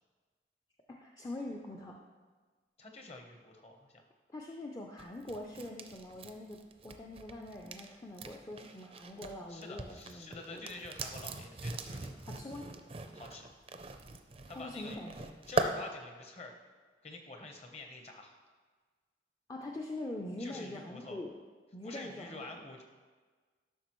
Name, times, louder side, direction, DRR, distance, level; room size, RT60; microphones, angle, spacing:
voice 1, 0.9-2.0 4.3-10.6 12.2-12.7 14.5-15.3 19.5-21.4 21.7-22.4, left 1 dB, 20° left, 0 dB, 0.4 m, -43 dB
voice 2, 2.8-4.0 9.5-12.2 13.1-13.5 14.5-15.0 15.5-16.6 17.0-18.4 20.4-21.2 21.8-22.8, left 2 dB, 35° left, 3 dB, 0.9 m, -47 dB
sound 1, 5.0-9.3 9.6-15.7, right 3 dB, 35° right, 0.5 m, -40 dB
11.5 x 5.9 x 3.0 m, 1.4 s
head